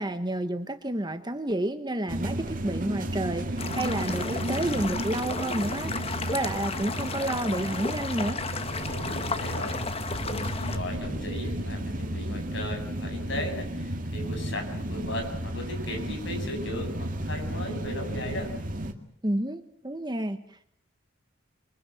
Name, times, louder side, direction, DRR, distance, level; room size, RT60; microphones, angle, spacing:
voice 1, 0.0-5.9 6.3-8.4 19.2-20.8, right 1 dB, 20° right, 9 dB, 1.3 m, -30 dB
sound 1, 2.1-18.9, right 1 dB, 40° right, 2.2 m, -33 dB
sound 2, 3.6-10.8, left 4 dB, 25° left, 1.1 m, -34 dB
voice 2, 8.8-9.8 10.2-18.5, left 1 dB, 55° left, 4 dB, 7.5 m, -36 dB
28.0 x 24.0 x 7.8 m, 0.65 s
head